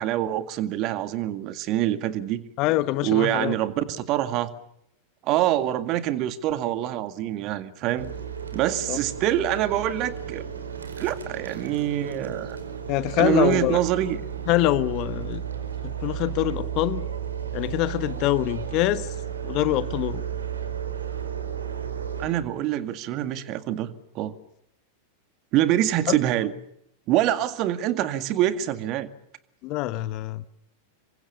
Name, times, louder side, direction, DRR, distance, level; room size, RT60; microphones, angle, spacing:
voice 1, 0.0-2.4 3.0-4.5 5.2-8.1 8.5-10.5 11.0-12.6 13.2-14.2 22.2-24.3 25.5-26.5 27.1-29.1, right 12 dB, 40° right, 11 dB, 2.0 m, -25 dB
voice 2, 2.6-3.5 8.9-9.0 12.9-13.8 14.5-15.4 15.8-17.1 17.5-19.1 19.4-20.2 26.1-26.2 29.6-30.4, left 16 dB, 40° left, 15 dB, 1.3 m, -25 dB
sound 1, 8.0-22.3, right 8 dB, 70° right, 4.7 m, -33 dB
27.5 x 24.0 x 6.9 m, 0.76 s
figure-of-eight pair, 90°, 0 cm